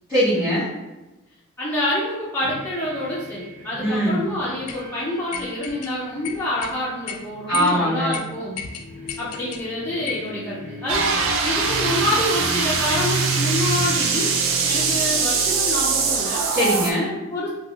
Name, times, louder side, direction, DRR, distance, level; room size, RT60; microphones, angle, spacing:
voice 1, 0.1-0.7 3.8-4.2 7.5-8.1 16.5-17.2, equal, 10° right, -15 dB, 1.3 m, -21 dB
voice 2, 1.6-8.6 9.2-11.2 11.4-14.3 14.6-16.4 17.3-17.5, left 1 dB, 10° left, -8 dB, 0.4 m, -27 dB
sound 1, 2.4-14.5, left 1 dB, 30° right, 0.8 m, -41 dB
sound 2, 4.7-4.8 5.3-5.9 6.2-6.8 7.1-7.2 7.5-7.8 8.1-8.2 8.6-9.6 10.1-10.3, left 8 dB, 85° left, 0.3 m, -33 dB
sound 3, 10.9-16.9, right 5 dB, 65° right, 0.4 m, -22 dB
3.4 x 2.3 x 2.3 m, 1.0 s
head